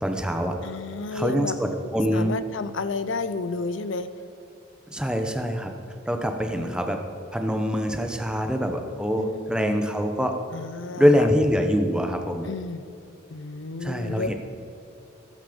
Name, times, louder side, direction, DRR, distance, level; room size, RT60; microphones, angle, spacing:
voice 1, 0.0-0.6 1.1-2.4 4.9-5.7 6.1-7.0 7.3-10.3 11.0-12.5 13.8-14.3, equal, 5° right, 4 dB, 0.9 m, -24 dB
voice 2, 0.6-1.6 2.1-4.1 6.5-6.9 9.2-9.8 10.5-11.3 12.4-12.9 13.3-14.3, left 3 dB, 70° left, 13 dB, 0.6 m, -32 dB
14.0 x 11.5 x 5.2 m, 2.8 s
head